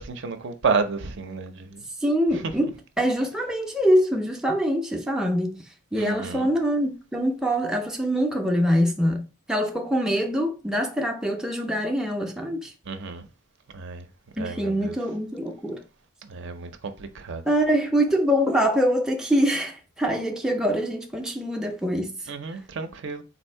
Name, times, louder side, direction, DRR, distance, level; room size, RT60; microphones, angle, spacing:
voice 1, 0.0-1.8 2.3-2.4 6.0-6.5 12.9-13.3 13.7-14.0 14.4-15.0 16.2-16.7 17.0-17.4 22.3-23.2, right 4 dB, 55° right, 0.5 m, -30 dB
voice 2, 2.0-5.6 5.9-12.7 14.4-15.8 17.5-22.1, equal, 5° right, 0.4 m, -24 dB
4.1 x 2.7 x 4.3 m
head